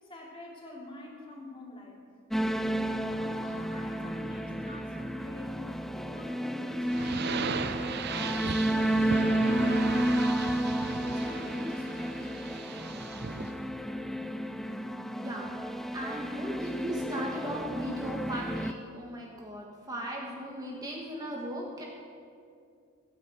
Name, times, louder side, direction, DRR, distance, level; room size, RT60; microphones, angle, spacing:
voice 1, 0.0-2.0 2.8-10.6 11.0-12.4, left 1 dB, 25° left, -3 dB, 3.4 m, -46 dB
sound 1, 2.3-18.7, right 1 dB, ahead, 0.5 m, -31 dB
sound 2, 6.9-13.6, right 5 dB, 55° right, 0.7 m, -37 dB
voice 2, 15.2-21.8, right 1 dB, 20° right, -2 dB, 1.6 m, -37 dB
16.0 x 10.0 x 8.0 m, 2.3 s
head